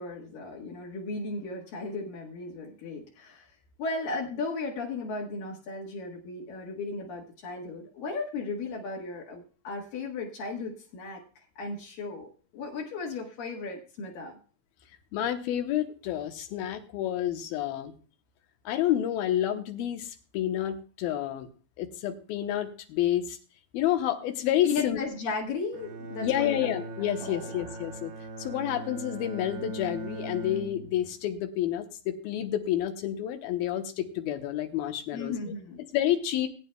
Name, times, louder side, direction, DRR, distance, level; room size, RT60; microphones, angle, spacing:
voice 1, 0.0-3.5 3.8-14.4 24.6-26.7 27.2-27.7 35.1-35.8, left 3 dB, 70° left, -2 dB, 3.2 m, -35 dB
voice 2, 15.1-17.9 18.7-21.5 21.8-23.4 23.7-25.0 26.2-28.1 28.4-35.3 35.9-36.5, left 11 dB, 90° left, 6 dB, 2.9 m, -29 dB
Bowed string instrument, 25.7-31.2, right 2 dB, 80° right, 4.1 m, -40 dB
20.5 x 9.5 x 2.3 m, 0.37 s
omnidirectional pair, 4.2 m